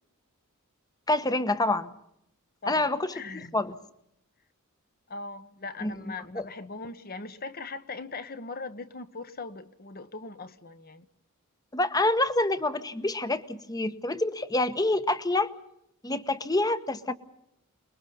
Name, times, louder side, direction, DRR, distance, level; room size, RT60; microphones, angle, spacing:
voice 1, 1.1-1.9 2.7-3.1 3.3-3.7 5.8-6.4 11.7-15.5 16.0-17.1, left 2 dB, 15° left, 1.1 m, -27 dB
voice 2, 2.6-3.6 5.1-11.1, left 3 dB, 45° left, 1.3 m, -40 dB
29.0 x 21.5 x 5.5 m
head